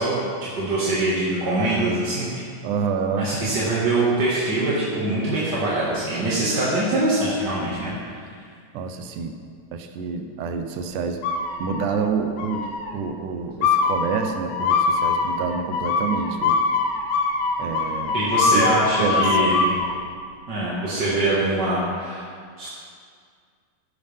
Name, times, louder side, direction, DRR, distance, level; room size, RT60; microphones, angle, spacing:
voice 1, 0.0-2.3 3.2-8.3 18.1-19.8 20.5-22.2 22.6-22.7, right 2 dB, 40° right, -8 dB, 2.0 m, -23 dB
voice 2, 2.6-3.3 8.7-9.4 9.7-11.2 11.6-12.7 12.9-16.6 17.6-18.2 18.5-18.7 19.0-19.6, right 5 dB, 80° right, 6 dB, 2.2 m, -27 dB
sound 1, 11.2-12.0 12.4-12.9 13.6-19.9, left 4 dB, 75° left, 2.2 m, -23 dB
15.0 x 10.5 x 3.5 m, 2.1 s
omnidirectional pair, 3.6 m